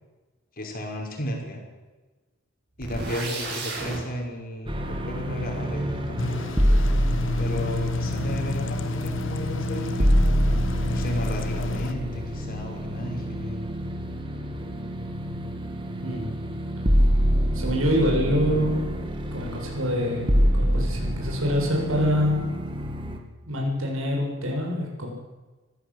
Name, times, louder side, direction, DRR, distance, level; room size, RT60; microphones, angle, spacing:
voice 1, 0.6-1.6 2.8-6.2 7.4-10.5 10.9-13.6, equal, 45° left, 1 dB, 5.5 m, -34 dB
sound 1, 2.8-4.0, right 2 dB, 55° right, 7.8 m, -32 dB
sound 2, 4.7-23.2, equal, 25° right, 2.5 m, -26 dB
sound 3, 6.2-11.9, left 3 dB, 65° left, 1.4 m, -30 dB
voice 2, 16.0-16.3 17.4-18.9 19.3-22.5 23.4-25.1, equal, 80° right, -1 dB, 7.6 m, -25 dB
24.0 x 15.5 x 8.1 m, 1.2 s
head